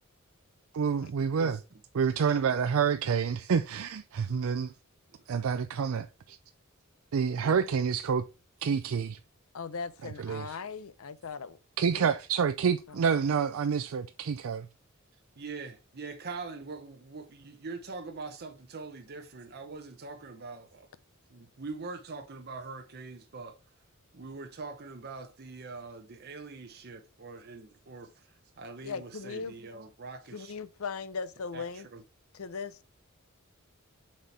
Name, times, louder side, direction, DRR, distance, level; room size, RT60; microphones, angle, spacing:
voice 1, 0.7-1.6 1.9-4.7 5.3-6.4 7.1-8.2 8.6-9.2 10.2-10.5 11.8-14.7, right 6 dB, 70° right, 0.4 m, -28 dB
voice 2, 9.5-11.6 11.9-12.1 12.9-13.0 28.8-29.5 30.3-31.9 32.3-32.8, left 5 dB, 75° left, 0.6 m, -38 dB
voice 3, 15.4-20.9 21.3-23.5 24.1-30.5 31.5-32.0, right 4 dB, 50° right, 0.8 m, -43 dB
7.4 x 4.3 x 3.3 m
head